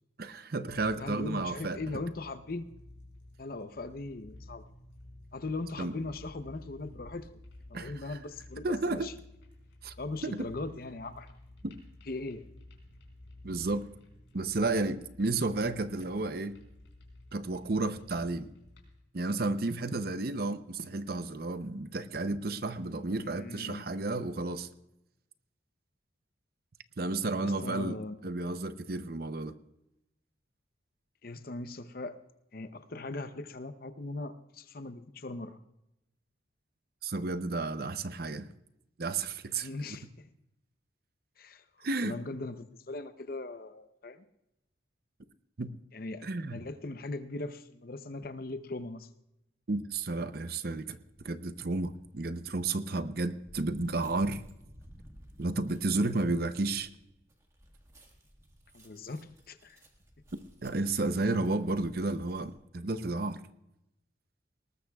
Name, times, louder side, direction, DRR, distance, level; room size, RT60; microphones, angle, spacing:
voice 1, 0.2-1.8 5.8-6.0 7.7-8.2 8.6-9.1 9.8-9.9 10.2-10.5 11.6-11.8 13.4-13.9 14.3-16.6 17.3-18.5 19.1-24.7 27.0-29.6 37.0-38.5 39.0-40.0 41.8-42.2 45.6-45.7 46.2-46.6 49.7-51.0 51.2-54.4 55.4-56.9 60.6-63.4, right 2 dB, 55° right, 11 dB, 0.7 m, -32 dB
sound 1, 0.6-19.0, left 1 dB, 85° left, 4.1 m, -53 dB
voice 2, 1.0-2.7 3.4-4.7 5.3-7.3 7.7-9.1 10.0-11.4 12.1-12.5 23.2-23.9 27.4-28.2 31.2-32.1 32.5-35.6 39.6-40.3 41.4-44.2 45.9-49.1 58.7-59.8, left 2 dB, 50° left, 10 dB, 0.7 m, -39 dB
sound 2, 51.1-51.4 52.0-62.6, equal, 15° right, 1.6 m, -56 dB
19.5 x 19.0 x 2.3 m, 0.87 s
head